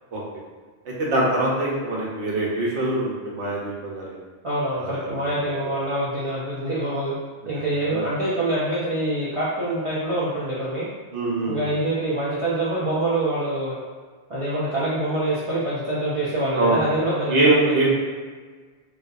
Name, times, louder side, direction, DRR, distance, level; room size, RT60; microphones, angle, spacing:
voice 1, 0.9-4.2 4.8-5.1 5.6-5.8 7.9-8.1 11.1-11.7 16.6-17.0 17.3-17.9, right 2 dB, 85° right, -4 dB, 1.0 m, -23 dB
voice 2, 4.4-7.2 7.5-10.9 11.5-13.8 14.3-17.9, right 1 dB, 55° right, -9 dB, 0.3 m, -25 dB
2.7 x 2.2 x 2.3 m, 1.5 s
omnidirectional pair, 1.1 m